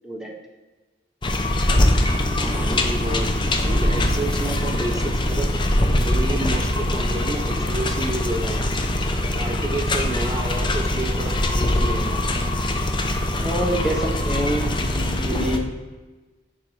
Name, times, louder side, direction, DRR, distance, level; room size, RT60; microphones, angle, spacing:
sound 1, 1.2-15.6, left 1 dB, 25° left, 0.6 m, -22 dB
voice 1, 2.3-3.3 3.6-5.5 6.0-8.6 9.4-12.2, right 2 dB, 20° right, 4 dB, 0.5 m, -30 dB
voice 2, 13.3-14.6 15.2-15.6, right 1 dB, 5° right, -2 dB, 1.0 m, -26 dB
10.5 x 3.7 x 3.2 m, 1.2 s
head